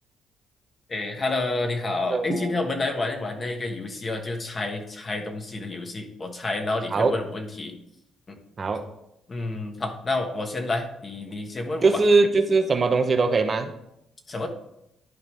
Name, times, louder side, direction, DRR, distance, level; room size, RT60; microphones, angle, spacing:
voice 1, 0.9-7.8 8.3-8.4 9.3-12.0 14.3-14.5, left 2 dB, 35° left, 4 dB, 1.4 m, -29 dB
voice 2, 2.1-2.5 6.9-7.1 8.6-8.8 11.8-13.7, right 3 dB, 40° right, 6 dB, 0.8 m, -21 dB
11.5 x 4.8 x 3.7 m, 0.81 s
cardioid pair, 90°, 0 cm